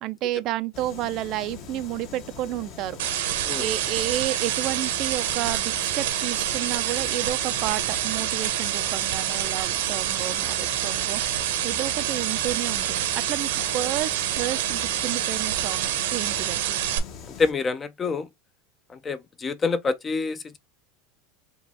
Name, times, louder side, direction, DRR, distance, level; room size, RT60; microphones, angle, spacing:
voice 1, 0.0-3.0 3.6-11.2 11.6-14.1 14.4-16.8, right 14 dB, 45° right, 0.4 m, -31 dB
sound 1, 0.7-17.5, left 6 dB, 45° left, 1.0 m, -42 dB
sound 2, 3.0-17.0, right 12 dB, 80° right, 1.0 m, -27 dB
voice 2, 17.4-18.3 18.9-20.6, left 4 dB, 20° left, 0.5 m, -27 dB
4.8 x 2.3 x 3.3 m
supercardioid pair, 150°, 0 cm